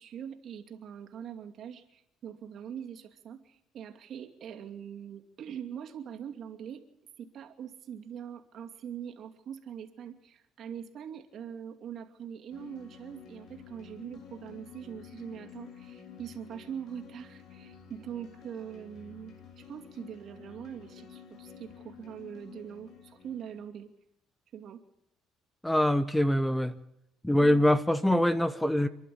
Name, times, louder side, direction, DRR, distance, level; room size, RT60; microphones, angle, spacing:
voice 1, 0.0-6.8 7.2-23.9 24.5-24.8 27.3-27.7, right 8 dB, 55° right, 3 dB, 2.6 m, -43 dB
sound 1, 12.5-23.7, left 8 dB, 60° left, 3.3 m, -51 dB
voice 2, 25.6-26.7 27.2-28.9, left 1 dB, 5° left, 14 dB, 0.9 m, -24 dB
28.0 x 11.5 x 8.7 m, 0.83 s
cardioid pair, 105°, 0 cm